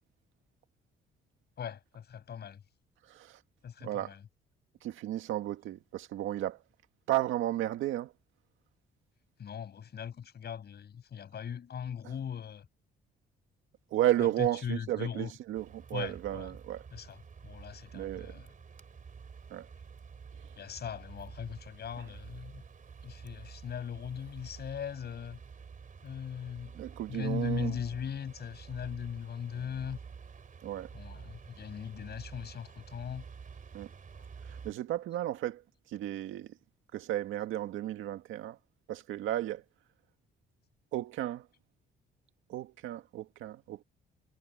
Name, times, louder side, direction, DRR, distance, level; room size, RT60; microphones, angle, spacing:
voice 1, 1.6-2.6 3.6-4.2 9.4-12.7 14.2-15.3 15.9-16.5 16.9-18.5 20.5-22.6 23.0-25.4 26.0-26.8 27.1-30.0 30.9-33.3 34.1-34.3, left 8 dB, 55° left, 6.1 m, -39 dB
voice 2, 3.1-3.4 3.8-4.1 4.8-6.6 7.1-8.1 13.9-16.8 17.9-18.3 19.5-19.7 26.7-27.8 30.6-30.9 33.7-33.9 34.4-35.6 35.9-36.5 36.9-38.6 38.9-39.6 40.9-41.5 42.5-43.8, right 13 dB, 85° right, 1.9 m, -33 dB
sound 1, 15.5-34.7, right 6 dB, 40° right, 3.7 m, -49 dB
cardioid pair, 90°, 20 cm